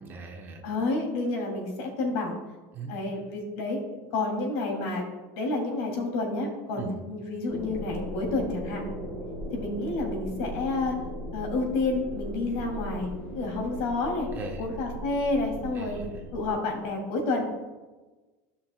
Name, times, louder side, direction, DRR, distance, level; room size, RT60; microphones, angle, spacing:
voice 1, 0.0-0.6 2.7-3.0 6.8-7.0 14.3-14.6 15.7-16.1, right 4 dB, 25° right, 3 dB, 0.9 m, -39 dB
voice 2, 0.6-2.4 2.9-5.0 5.3-8.8 9.5-10.9 11.3-13.1 13.3-14.3 14.6-16.0 16.3-17.4, left 2 dB, 70° left, 1 dB, 2.6 m, -29 dB
sound 1, 7.5-16.5, equal, 20° left, 2.5 m, -38 dB
14.5 x 5.8 x 2.2 m, 1.2 s
cardioid pair, 160°, 8 cm